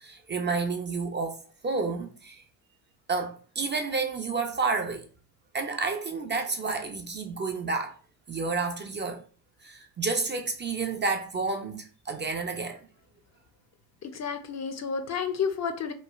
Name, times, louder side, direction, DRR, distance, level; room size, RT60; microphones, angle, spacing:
voice 1, 0.0-2.4 3.1-5.1 5.5-7.9 8.3-9.2 9.6-12.8, right 4 dB, 30° right, 0.4 m, -30 dB
voice 2, 14.0-15.9, left 6 dB, 40° left, 0.5 m, -31 dB
3.0 x 2.4 x 2.3 m
supercardioid pair, 80°, 41 cm